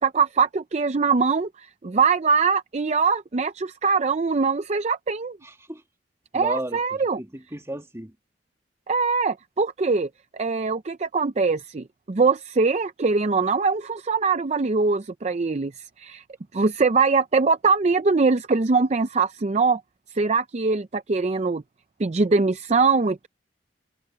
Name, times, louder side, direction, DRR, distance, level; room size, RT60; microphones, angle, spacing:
voice 1, 0.0-5.4 6.3-7.2 8.9-16.2 16.5-19.8 20.1-21.6 22.0-23.3, right 4 dB, 40° right, 0.5 m, -22 dB
voice 2, 5.4-5.8 6.3-8.2, right 1 dB, 15° right, 2.1 m, -35 dB
head